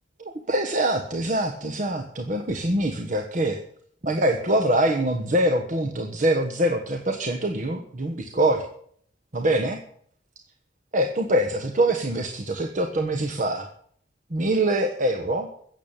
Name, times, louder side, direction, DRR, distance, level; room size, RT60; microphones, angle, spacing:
voice 1, 0.2-3.6 4.0-8.6 9.3-9.8 10.9-13.7 14.3-15.5, right 1 dB, 45° right, 5 dB, 1.3 m, -24 dB
15.5 x 7.4 x 8.9 m, 0.62 s
head